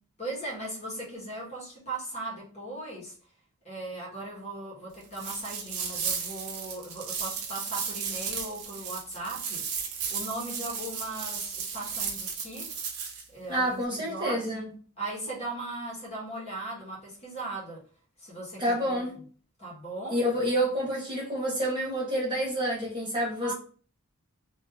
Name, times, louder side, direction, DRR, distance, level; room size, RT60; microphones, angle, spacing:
voice 1, 0.2-3.1 3.6-9.6 10.1-12.7 13.3-14.4 15.0-17.8 18.2-19.0 19.6-20.2 23.4-23.5, right 2 dB, 30° left, -5 dB, 1.6 m, -38 dB
sound 1, 5.1-13.2, right 6 dB, 90° right, 0.9 m, -34 dB
voice 2, 13.5-14.7 18.6-19.1 20.1-23.5, equal, 20° right, -4 dB, 1.3 m, -28 dB
3.1 x 3.0 x 3.5 m, 0.42 s
head